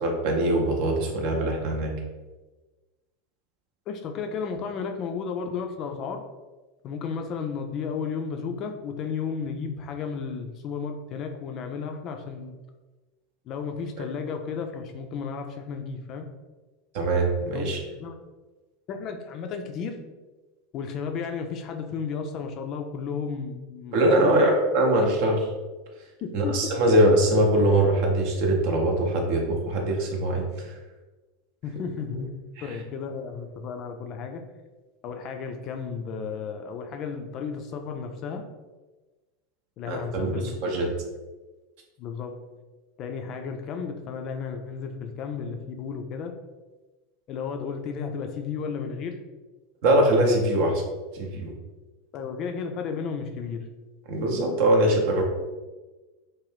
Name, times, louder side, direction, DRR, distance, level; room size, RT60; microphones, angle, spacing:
voice 1, 0.0-1.9 14.0-14.1 16.9-17.8 23.9-25.5 26.3-30.7 32.6-32.7 39.9-40.9 49.8-50.8 51.1-51.5 54.1-55.2, right 1 dB, 55° right, 1 dB, 0.6 m, -22 dB
voice 2, 3.9-6.2 6.8-12.5 13.5-16.3 17.5-17.6 18.0-18.2 18.9-20.0 20.7-24.5 26.2-26.7 31.6-32.3 32.6-34.4 35.0-38.4 39.8-40.5 42.0-42.3 43.0-46.3 47.3-49.1 52.1-53.6, left 6 dB, 45° left, 5 dB, 0.3 m, -33 dB
2.5 x 2.1 x 3.3 m, 1.2 s
figure-of-eight pair, 85°, 0 cm